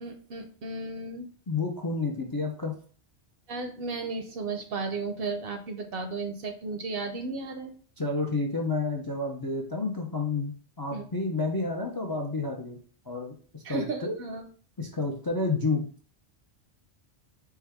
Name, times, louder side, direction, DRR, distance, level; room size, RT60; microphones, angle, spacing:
voice 1, 0.0-1.3 3.5-7.7 10.9-11.0 13.6-14.4, right 3 dB, 65° right, 6 dB, 0.7 m, -34 dB
voice 2, 1.5-2.8 8.0-12.8 13.1-14.2 14.8-15.9, left 3 dB, 35° left, 0 dB, 0.3 m, -30 dB
4.6 x 2.2 x 3.4 m, 0.44 s
omnidirectional pair, 1.2 m